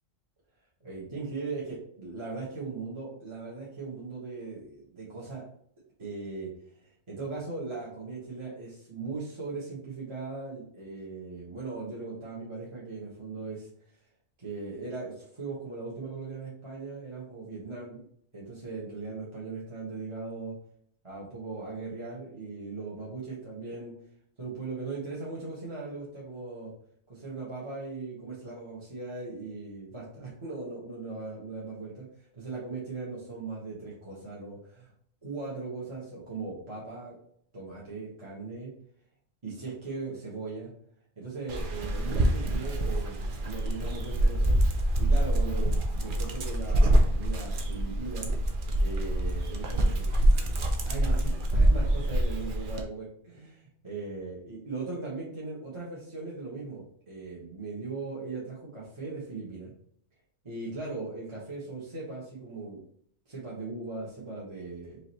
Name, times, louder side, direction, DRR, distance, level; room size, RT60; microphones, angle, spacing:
voice 1, 0.8-5.5 6.0-6.5 6.8-13.7 14.4-18.0 18.3-20.5 21.0-23.9 24.4-26.7 27.1-34.9 35.2-37.2 37.5-38.7 39.4-40.7 41.2-44.6 45.0-48.3 48.8-50.2 50.8-59.7 60.4-62.8 63.3-65.0, right 3 dB, 25° right, -6 dB, 1.1 m, -39 dB
Dog, 41.5-52.8, right 1 dB, 55° right, 0.7 m, -26 dB
4.9 x 2.8 x 2.8 m, 0.64 s
omnidirectional pair, 1.2 m